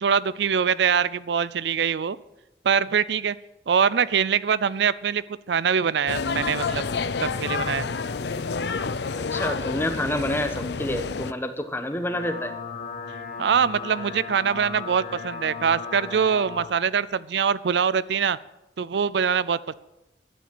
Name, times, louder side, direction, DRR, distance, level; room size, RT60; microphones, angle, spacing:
voice 1, 0.0-2.2 2.6-3.4 3.7-6.8 7.2-7.9 13.4-18.4 18.8-19.7, right 7 dB, 70° right, 18 dB, 0.4 m, -23 dB
sound 1, 6.1-11.3, left 4 dB, 65° left, 0.6 m, -29 dB
voice 2, 9.2-12.5, left 1 dB, 15° left, 8 dB, 1.1 m, -28 dB
sound 2, 11.8-16.7, left 5 dB, 50° left, 1.5 m, -36 dB
12.0 x 9.3 x 7.8 m, 0.93 s
head